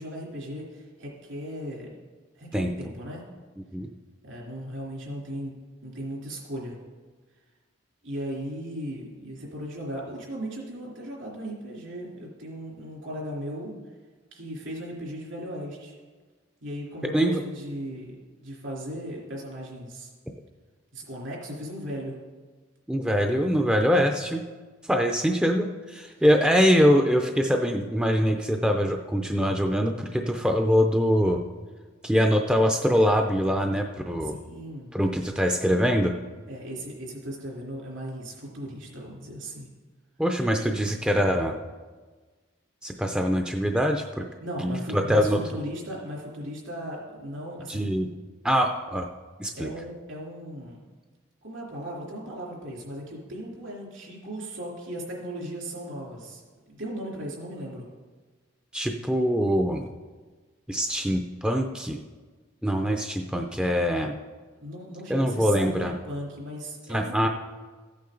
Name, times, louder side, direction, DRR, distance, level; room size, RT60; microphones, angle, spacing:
voice 1, 0.0-1.9 2.4-3.3 4.2-5.5 5.8-6.8 8.0-13.7 14.3-16.0 16.6-18.2 18.4-20.1 20.9-22.2 34.2-34.9 36.5-39.7 44.4-47.9 49.6-50.8 51.4-56.4 56.7-57.9 64.6-67.3, equal, 75° right, -3 dB, 3.4 m, -37 dB
voice 2, 22.9-24.4 24.9-31.4 32.0-34.3 34.9-36.1 40.2-41.5 42.8-44.3 44.6-45.4 47.7-48.1 48.4-49.1 49.4-49.7 58.7-59.9 60.7-62.0 62.6-64.1 65.1-65.9 66.9-67.3, equal, 5° right, 3 dB, 0.5 m, -23 dB
14.5 x 8.5 x 3.9 m, 1.4 s
head